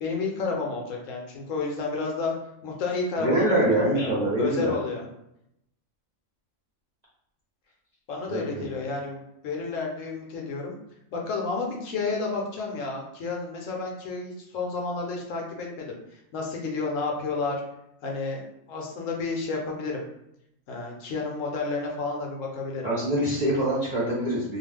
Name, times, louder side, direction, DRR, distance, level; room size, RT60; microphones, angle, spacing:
voice 1, 0.0-2.3 2.6-4.1 4.4-5.0 8.1-9.2 9.4-10.7 11.1-17.6 18.0-18.4 18.7-20.0 20.7-22.9, left 4 dB, 70° left, 0 dB, 0.9 m, -31 dB
voice 2, 3.2-4.7 8.3-8.6 22.8-24.6, right 1 dB, 45° right, -8 dB, 0.5 m, -25 dB
2.3 x 2.3 x 3.2 m, 0.80 s
omnidirectional pair, 1.5 m